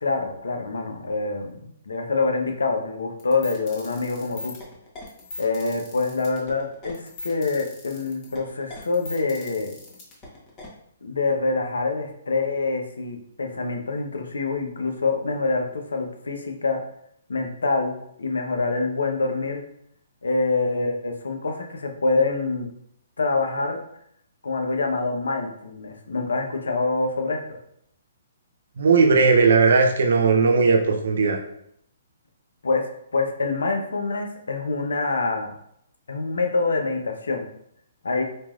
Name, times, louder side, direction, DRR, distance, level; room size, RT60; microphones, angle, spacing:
voice 1, 0.0-4.5 5.4-9.7 11.0-16.8 17.3-17.9 18.2-19.6 20.2-22.7 23.2-23.8 24.4-27.6 32.6-32.8 33.1-35.5 36.1-37.5 38.0-38.2, left 3 dB, 85° left, 3 dB, 0.9 m, -25 dB
sound 1, 3.2-10.7, left 2 dB, 25° left, 1.2 m, -40 dB
voice 2, 28.8-31.4, right 4 dB, 70° right, 4 dB, 0.7 m, -17 dB
4.5 x 3.0 x 2.5 m, 0.71 s
hypercardioid pair, 145°, 0 cm